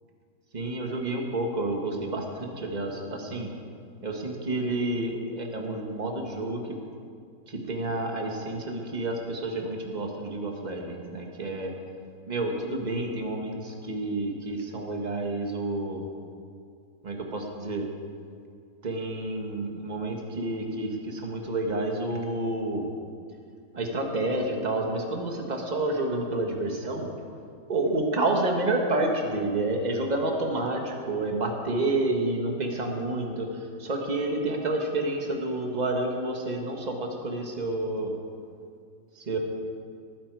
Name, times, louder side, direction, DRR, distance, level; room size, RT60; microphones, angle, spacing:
voice 1, 0.5-3.5 4.0-6.8 7.5-11.7 12.3-16.0 17.0-17.9 18.8-22.9 23.7-27.1 27.7-33.5 33.8-38.1 39.1-39.4, right 2 dB, 30° right, 2 dB, 1.6 m, -29 dB
19.5 x 9.4 x 4.8 m, 2.3 s
omnidirectional pair, 1.5 m